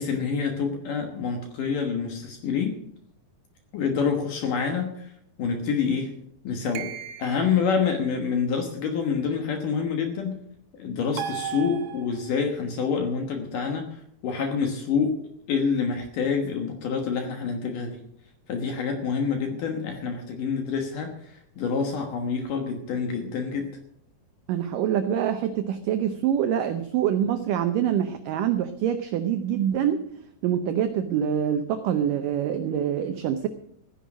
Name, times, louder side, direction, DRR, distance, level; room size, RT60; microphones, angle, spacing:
voice 1, 0.0-2.8 3.7-5.1 5.4-6.1 6.4-6.9 7.2-10.4 10.7-15.2 15.5-18.0 18.5-23.7, left 6 dB, 65° left, 5 dB, 2.5 m, -27 dB
sound 1, 6.7-7.7 11.2-12.4, right 10 dB, 70° right, 2.4 m, -35 dB
voice 2, 24.5-30.0 30.4-33.5, right 9 dB, 90° right, 9 dB, 1.9 m, -25 dB
15.0 x 10.5 x 6.2 m, 0.70 s
omnidirectional pair, 4.9 m